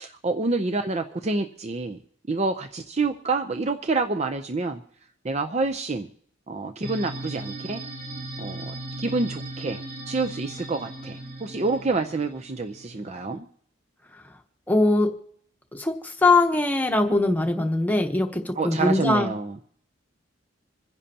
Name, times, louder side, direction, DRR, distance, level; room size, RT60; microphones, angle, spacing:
voice 1, 0.0-2.0 2.3-4.8 5.2-6.1 6.5-7.8 8.4-8.7 9.0-9.8 10.1-13.5 18.6-19.6, right 3 dB, 30° right, 6 dB, 0.6 m, -27 dB
sound 1, 6.8-13.4, right 1 dB, 50° right, 3.0 m, -38 dB
voice 2, 14.7-15.1 15.7-19.3, left 2 dB, 10° left, 3 dB, 1.0 m, -21 dB
26.5 x 10.5 x 2.9 m, 0.67 s
head